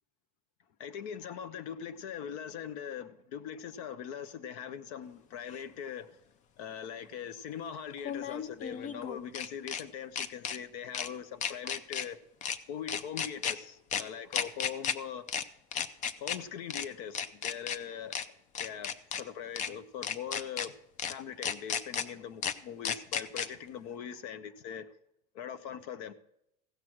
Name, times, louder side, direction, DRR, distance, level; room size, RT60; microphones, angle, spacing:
voice 1, 0.8-6.2 6.6-12.2 12.7-15.2 16.2-18.2 18.6-20.7 21.1-24.9 25.3-26.1, left 8 dB, 70° left, 0.9 m, -41 dB
sound 1, 5.5-5.6 8.0-9.8 10.2-10.6 10.9-11.1 11.4-12.1 12.4-12.6 12.9-13.5 13.9-14.0 14.3-14.9 15.3-15.4 15.7-16.4 16.7-16.8 17.1-17.8 18.1-18.2 18.5-19.2 19.6-19.7 20.0-20.7 21.0-21.1 21.4-22.0 22.4-22.5 22.8-23.5, left 8 dB, 40° left, 0.6 m, -33 dB
15.5 x 6.4 x 6.0 m
supercardioid pair, 135°, 20 cm